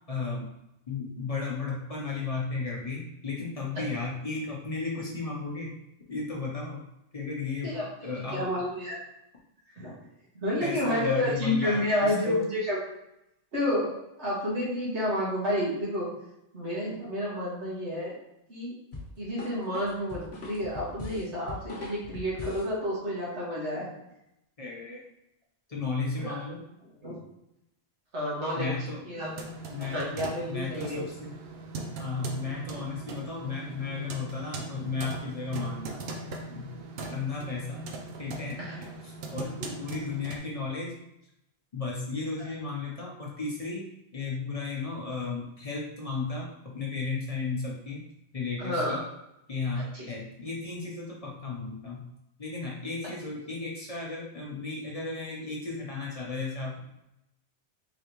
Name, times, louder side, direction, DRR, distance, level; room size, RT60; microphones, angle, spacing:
voice 1, 0.1-0.5 0.9-5.7 6.1-6.8 7.1-7.7 8.0-8.5 10.6-12.4 24.6-25.0 25.7-26.6 28.6-29.2 29.7-30.1 30.5-31.4 32.0-36.1 36.5-36.7 37.1-37.9 38.2-38.6 39.0-40.9 41.7-43.8 44.1-48.0 48.3-49.0 49.5-52.0 52.4-56.9, left 4 dB, 40° left, -3 dB, 0.7 m, -34 dB
voice 2, 8.3-9.0 9.8-9.9 10.4-12.8 13.5-13.9 14.2-16.1 16.5-18.1 18.5-18.7 19.2-23.9 26.2-26.3 27.0-27.2 28.1-28.7 29.1-29.4 29.8-31.1 38.7-38.8 39.6-39.7 48.6-49.0 49.9-50.0, left 1 dB, 85° right, -7 dB, 1.8 m, -30 dB
sound 1, 18.9-22.7, left 2 dB, 70° left, 1.2 m, -41 dB
sound 2, 29.2-40.4, right 3 dB, 65° right, 0.8 m, -40 dB
3.9 x 3.3 x 2.9 m, 0.85 s
omnidirectional pair, 1.1 m